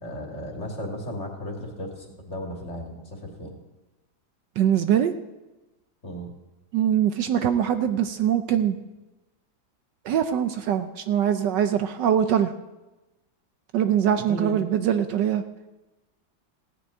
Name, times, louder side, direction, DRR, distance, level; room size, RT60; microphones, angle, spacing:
voice 1, 0.0-3.5 6.0-6.3 14.3-14.6, equal, 35° left, 1 dB, 2.5 m, -35 dB
voice 2, 4.6-5.1 6.7-8.8 10.0-12.5 13.7-15.4, right 9 dB, 70° right, 9 dB, 1.2 m, -22 dB
16.0 x 6.2 x 9.4 m, 1.1 s
omnidirectional pair, 2.1 m